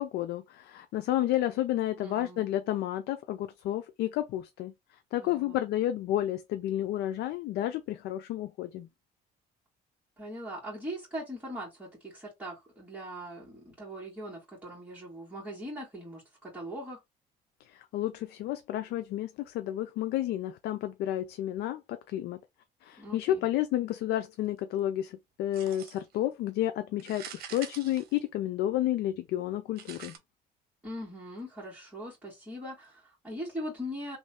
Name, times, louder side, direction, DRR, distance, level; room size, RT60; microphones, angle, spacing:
voice 1, 0.0-4.7 5.1-8.9 17.6-22.4 22.8-30.2, left 13 dB, 75° left, 0.5 m, -31 dB
voice 2, 2.0-2.5 5.2-5.6 10.2-17.0 23.0-23.5 30.8-34.2, equal, 5° right, 2.0 m, -41 dB
sound 1, 25.5-26.2 27.0-28.7 29.8-30.2, right 8 dB, 65° right, 0.8 m, -45 dB
3.1 x 2.7 x 3.4 m
cardioid pair, 110°, 17 cm